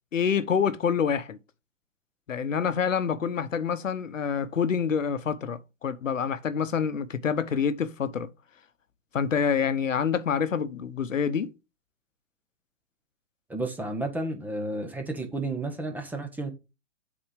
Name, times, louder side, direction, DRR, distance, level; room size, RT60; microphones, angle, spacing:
voice 1, 0.1-1.4 2.3-8.3 9.1-11.5, left 7 dB, 90° left, 1.0 m, -27 dB
voice 2, 13.5-16.5, right 2 dB, 5° right, 0.9 m, -32 dB
7.4 x 4.3 x 4.9 m
hypercardioid pair, 140°, 38 cm